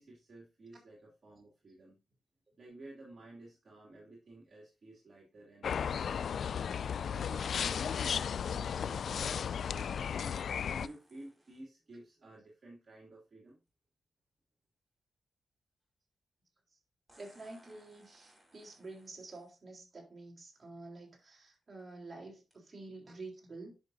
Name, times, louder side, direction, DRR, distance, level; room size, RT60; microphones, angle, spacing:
voice 1, 0.0-2.0 2.6-6.4 7.1-10.3 10.8-13.6, right 2 dB, 55° right, 2.7 m, -53 dB
sound 1, 5.6-10.9, left 7 dB, 75° left, 0.3 m, -34 dB
sound 2, 10.8-11.7 13.7-13.8 17.1-19.6 20.5-20.6 21.3-21.5 22.5-22.6, equal, 10° right, 5.3 m, -64 dB
voice 2, 17.2-23.8, right 2 dB, 40° right, 3.7 m, -49 dB
10.5 x 5.9 x 2.7 m
cardioid pair, 75°, 0 cm